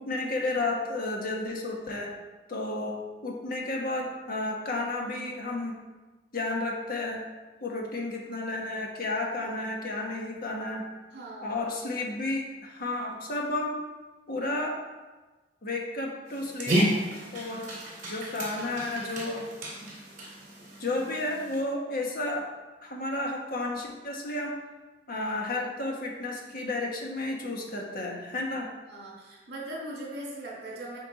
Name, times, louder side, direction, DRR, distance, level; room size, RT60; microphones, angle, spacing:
voice 1, 0.0-2.1 2.5-5.8 6.3-7.2 7.6-10.8 11.4-13.8 14.3-14.8 15.6-16.8 17.3-17.7 18.1-19.5 20.8-22.5 22.8-24.6 25.1-28.7, left 2 dB, 55° left, -1 dB, 1.4 m, -32 dB
voice 2, 11.1-11.6 28.9-31.0, right 1 dB, 65° right, -4 dB, 2.3 m, -40 dB
Dog, 16.3-21.6, right 1 dB, 50° right, 2.4 m, -32 dB
8.5 x 4.7 x 4.1 m, 1.2 s
head